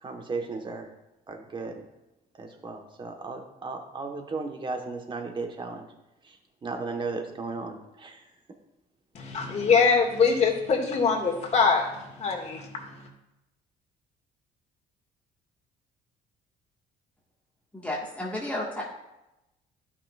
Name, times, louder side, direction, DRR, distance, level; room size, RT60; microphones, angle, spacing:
voice 1, 0.0-0.9 1.3-1.8 2.3-5.9 6.2-8.3, right 3 dB, 30° right, 4 dB, 1.3 m, -35 dB
voice 2, 9.1-12.7, left 5 dB, 40° left, 0 dB, 2.0 m, -23 dB
voice 3, 17.7-18.8, left 1 dB, 10° left, -4 dB, 1.6 m, -32 dB
12.5 x 5.7 x 2.4 m, 0.93 s
cardioid pair, 110°, 17 cm